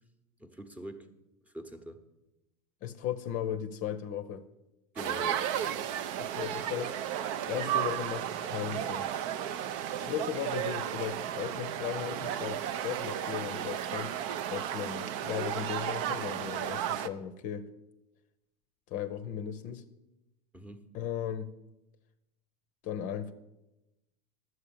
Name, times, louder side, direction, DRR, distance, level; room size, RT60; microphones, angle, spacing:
voice 1, 0.4-1.1 1.5-2.0 4.9-5.5 20.5-20.8, equal, 5° right, 7 dB, 1.0 m, -43 dB
voice 2, 2.8-4.4 6.2-6.9 7.5-9.1 10.0-14.1 14.5-17.7 18.9-19.8 20.9-21.5 22.8-23.3, left 9 dB, 40° left, 10 dB, 0.7 m, -36 dB
sound 1, 5.0-17.1, right 10 dB, 50° right, 0.6 m, -34 dB
11.5 x 7.9 x 7.1 m, 0.96 s
figure-of-eight pair, 85°, 20 cm